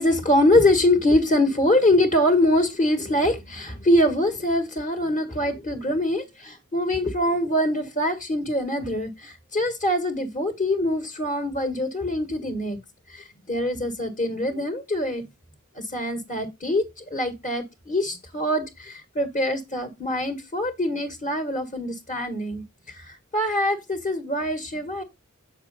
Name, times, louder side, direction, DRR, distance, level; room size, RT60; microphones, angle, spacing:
voice 1, 0.0-12.8 13.1-15.2 15.7-25.0, left 1 dB, 35° left, 1.7 m, -24 dB
8.3 x 6.6 x 4.1 m
head